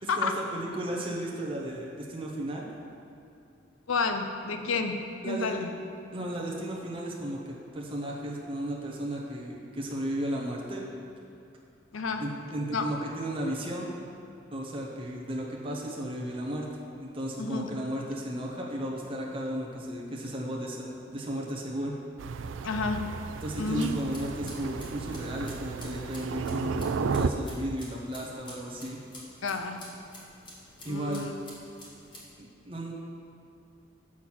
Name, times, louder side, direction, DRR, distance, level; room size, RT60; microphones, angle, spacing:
voice 1, 0.0-2.6 5.2-5.7 6.1-10.9 12.2-13.9 14.5-16.7 17.0-22.0 23.4-29.0 30.8-31.3 32.4-32.9, right 1 dB, 25° right, -2 dB, 0.9 m, -34 dB
voice 2, 3.9-5.7 11.9-12.2 12.7-12.9 17.4-17.7 22.6-23.0 23.6-23.9 29.4-29.8 30.9-31.3, left 4 dB, 80° left, 6 dB, 0.6 m, -30 dB
Thunder, 22.2-27.3, right 5 dB, 65° right, 0.4 m, -33 dB
sound 1, 23.5-32.3, left 1 dB, 25° left, 1.6 m, -49 dB
7.3 x 6.2 x 6.1 m, 2.6 s
head